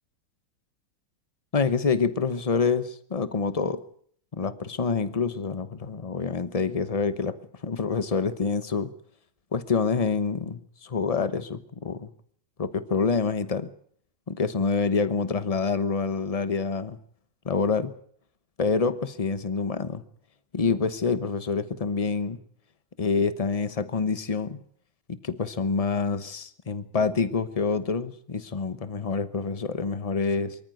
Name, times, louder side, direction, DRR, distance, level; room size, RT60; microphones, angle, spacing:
voice 1, 1.5-3.8 4.3-7.4 7.6-8.9 9.5-12.1 12.6-13.7 14.3-17.0 17.4-17.9 18.6-20.0 20.5-22.4 23.0-24.6 25.1-30.6, left 4 dB, 65° left, 0.3 m, -27 dB
24.0 x 14.0 x 9.2 m
omnidirectional pair, 2.2 m